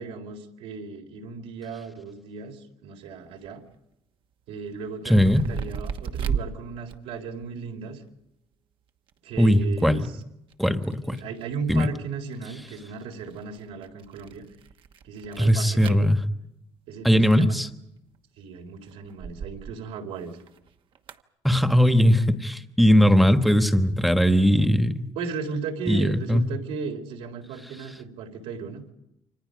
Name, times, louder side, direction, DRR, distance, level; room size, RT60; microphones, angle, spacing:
voice 1, 0.0-3.6 4.5-8.0 9.2-10.1 11.0-14.4 15.0-16.1 16.9-17.6 18.4-20.4 25.2-28.8, right 5 dB, 85° right, 3 dB, 4.0 m, -36 dB
sound 1, 3.1-3.2 3.4-3.8 4.7-6.5 6.8-7.6 9.1-9.2 9.4-9.8 10.2-11.8 12.3-16.4 17.7-18.2 18.8-19.8 20.1-21.2, right 7 dB, 55° right, 1.2 m, -36 dB
voice 2, 5.0-5.4 9.4-10.1 10.6-11.2 11.7-11.9 15.4-16.2 17.0-17.7 21.4-25.1 25.9-26.4, equal, ahead, 8 dB, 1.4 m, -19 dB
29.0 x 25.0 x 5.3 m, 0.83 s
cardioid pair, 120°, 10 cm